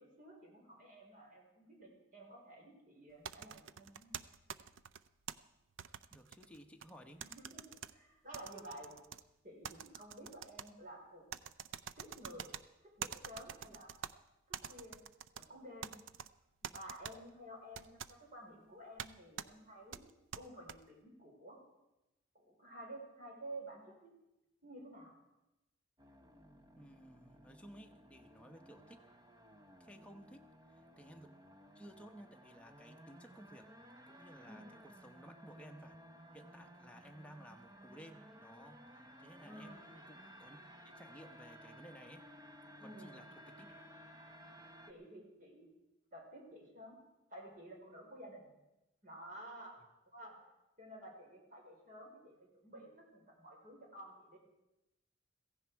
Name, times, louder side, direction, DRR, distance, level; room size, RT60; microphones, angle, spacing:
voice 1, 0.0-4.1 7.2-9.0 9.4-11.2 12.0-12.5 12.8-13.9 14.5-15.0 15.3-16.0 16.6-20.0 20.4-21.6 22.3-24.1 24.6-25.1 29.9-30.1 34.4-34.8 39.4-39.9 42.8-43.1 44.9-45.7 46.1-47.0 47.3-48.5 49.0-49.8 50.1-50.4 50.8-54.4, right 1 dB, 45° right, 0 dB, 4.4 m, -52 dB
sound 1, 3.2-5.3 5.8-6.9 7.2-7.9 8.3-9.2 9.6-10.7 11.3-12.6 13.0-14.1 14.5-15.5 15.8-16.3 16.6-17.1 17.7-18.1 19.0-19.1 19.4-19.5 19.9-20.8, right 8 dB, 85° right, 0.5 m, -46 dB
voice 2, 6.1-7.2 26.7-29.1 29.8-31.3 31.7-33.7 34.1-36.0 36.3-42.2 42.8-43.8, equal, 5° left, 3 dB, 1.0 m, -57 dB
sound 2, 26.0-44.9, equal, 20° right, 0.9 m, -57 dB
16.0 x 15.5 x 4.7 m, 0.96 s
head